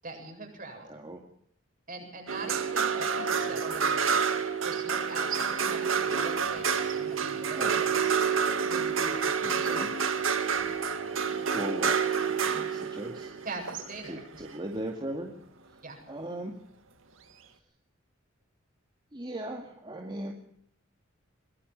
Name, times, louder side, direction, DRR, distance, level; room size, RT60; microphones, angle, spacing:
voice 1, 0.0-1.1 1.9-4.2 4.6-8.2 8.7-9.7 13.4-14.2 15.8-16.0, right 3 dB, 45° right, 3 dB, 7.9 m, -41 dB
voice 2, 0.9-1.2 7.5-7.8 9.4-10.0 11.5-12.0 12.4-13.4 14.0-15.4 16.1-16.6 19.1-20.3, right 1 dB, 25° right, 2 dB, 2.2 m, -38 dB
sound 1, 2.3-14.6 16.3-16.4, right 6 dB, 80° right, 2.1 m, -29 dB
22.5 x 21.5 x 5.5 m, 0.66 s
head